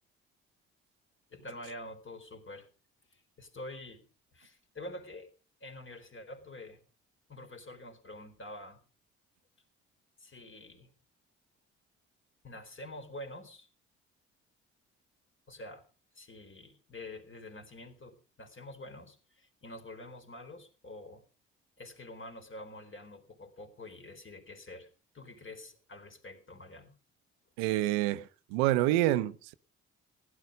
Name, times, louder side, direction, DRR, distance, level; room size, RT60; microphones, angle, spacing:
voice 1, 1.3-2.7 3.1-4.0 4.3-5.3 5.6-6.8 7.3-8.8 10.2-10.9 12.4-13.7 15.5-15.8 16.1-21.3 21.8-24.9 25.1-27.0, left 1 dB, 40° left, 4.1 m, -47 dB
voice 2, 27.6-29.5, right 15 dB, 85° right, 0.7 m, -28 dB
16.0 x 11.5 x 5.2 m
hypercardioid pair, 50°, 31 cm